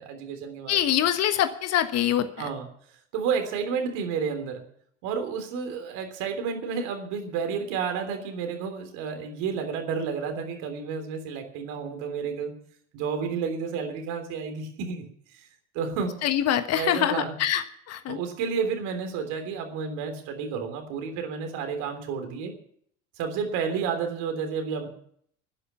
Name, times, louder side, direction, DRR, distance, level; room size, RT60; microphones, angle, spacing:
voice 1, 0.0-0.8 2.4-2.7 3.1-4.6 5.0-12.5 12.9-15.0 15.3-15.5 15.7-16.1 16.7-17.3 18.1-22.5 23.2-24.9, right 6 dB, 60° right, 6 dB, 3.4 m, -31 dB
voice 2, 0.7-2.3 16.2-18.2, left 11 dB, 45° left, 10 dB, 1.4 m, -24 dB
12.0 x 10.0 x 9.7 m, 0.65 s
hypercardioid pair, 70°, 34 cm